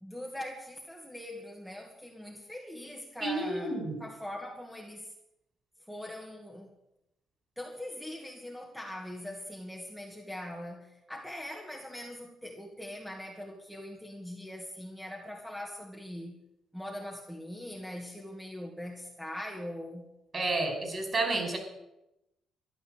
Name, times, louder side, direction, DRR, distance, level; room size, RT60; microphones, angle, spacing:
voice 1, 0.0-5.1 5.9-6.7 7.6-16.4 16.7-20.1, left 1 dB, ahead, -1 dB, 2.2 m, -42 dB
voice 2, 3.2-4.0 20.3-21.6, right 2 dB, 35° right, 5 dB, 5.4 m, -30 dB
13.5 x 11.0 x 8.0 m, 0.90 s
cardioid pair, 90°, 0 cm